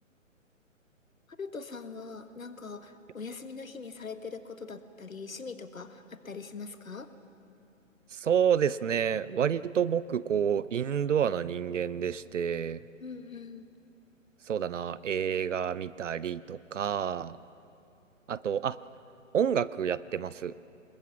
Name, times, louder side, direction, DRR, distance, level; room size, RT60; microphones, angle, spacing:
voice 1, 1.4-7.1 13.0-13.7, left 4 dB, 85° left, 10 dB, 1.5 m, -42 dB
voice 2, 8.1-12.8 14.5-17.4 18.3-18.8 19.3-20.5, right 8 dB, 65° right, 18 dB, 0.6 m, -29 dB
26.0 x 21.0 x 6.0 m, 2.7 s
figure-of-eight pair, 135°, 40 cm